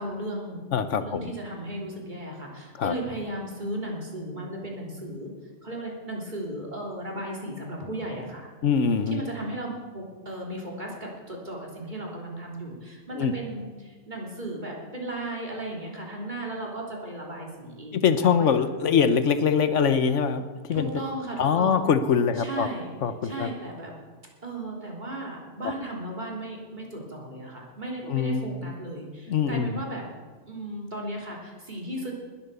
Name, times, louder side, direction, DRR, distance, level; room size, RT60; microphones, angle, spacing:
voice 1, 0.0-0.6 1.0-5.3 5.6-8.5 9.1-18.0 18.4-18.5 18.8-18.9 20.7-21.9 22.4-22.9 23.2-23.9 24.4-30.0 30.5-32.1, right 1 dB, 40° right, -2 dB, 3.5 m, -35 dB
voice 2, 0.7-1.3 2.7-2.9 8.6-9.2 13.1-13.3 17.9-20.9 21.4-22.7 23.0-23.5 25.6-25.7 28.1-28.7 29.3-29.8, left 6 dB, 80° left, 11 dB, 1.2 m, -23 dB
20.0 x 8.9 x 6.9 m, 1.4 s
omnidirectional pair, 1.3 m